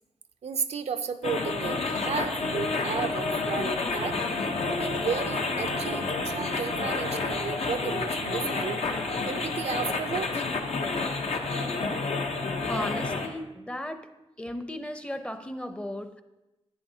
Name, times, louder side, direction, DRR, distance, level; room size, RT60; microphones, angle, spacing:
voice 1, 0.4-4.2 4.6-8.8 9.2-10.4, right 6 dB, 80° right, 9 dB, 0.5 m, -33 dB
sound 1, 1.2-13.3, left 3 dB, 80° left, 0.8 m, -29 dB
voice 2, 12.6-14.1 14.4-16.2, left 1 dB, 10° left, 9 dB, 0.5 m, -35 dB
10.5 x 8.9 x 2.7 m, 1.0 s
wide cardioid pair, 85°, 11 cm